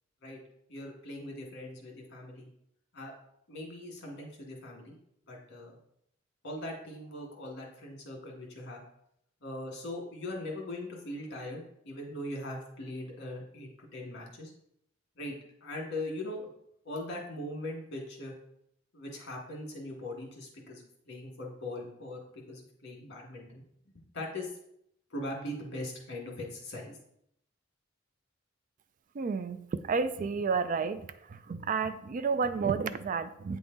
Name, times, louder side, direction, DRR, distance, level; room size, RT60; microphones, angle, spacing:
voice 1, 0.7-2.5 2.9-3.1 3.5-4.9 5.3-5.8 6.4-8.8 9.4-14.5 15.2-15.4 15.6-16.5 16.9-18.3 18.9-23.6 24.1-24.5 25.1-27.0, left 1 dB, 60° left, 0 dB, 1.9 m, -40 dB
voice 2, 29.1-33.6, right 5 dB, 40° right, 12 dB, 0.3 m, -31 dB
8.6 x 3.6 x 3.9 m, 0.73 s
head